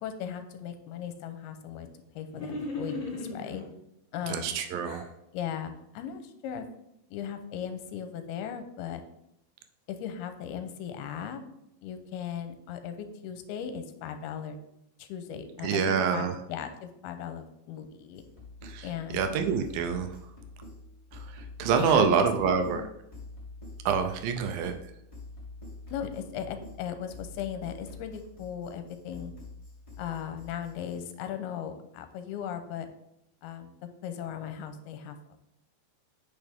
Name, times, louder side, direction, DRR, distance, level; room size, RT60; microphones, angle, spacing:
voice 1, 0.0-1.9 2.2-3.7 4.1-4.5 5.3-6.7 7.1-9.0 9.9-11.4 11.8-14.6 15.0-18.2 18.8-19.2 21.7-22.9 25.9-29.3 30.0-32.9 33.4-35.2, left 8 dB, 85° left, 8 dB, 2.6 m, -37 dB
sound 1, 2.3-3.6 4.3-5.1, left 2 dB, 50° left, 1.4 m, -37 dB
voice 2, 4.3-5.0 15.6-16.3 18.6-18.9 19.1-20.1 21.4-22.8 23.9-24.7, right 6 dB, 80° right, 6 dB, 2.2 m, -26 dB
sound 2, 18.1-31.0, left 2 dB, 25° left, 0.7 m, -46 dB
9.3 x 5.8 x 3.5 m, 0.81 s
omnidirectional pair, 4.5 m